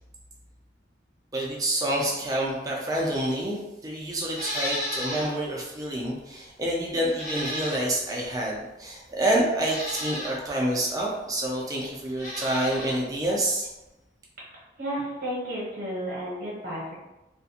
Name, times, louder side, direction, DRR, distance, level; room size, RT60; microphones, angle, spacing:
voice 1, 1.3-13.7, right 1 dB, 20° right, -3 dB, 0.4 m, -28 dB
Livestock farm animals working animals, 4.3-5.4 5.8-5.9 7.1-8.1 9.0-9.1 9.6-10.4 12.1-13.0 13.3-13.4, equal, 45° left, 1.0 m, -34 dB
voice 2, 14.8-16.9, equal, 50° right, -6 dB, 0.8 m, -32 dB
2.4 x 2.2 x 2.7 m, 0.98 s
head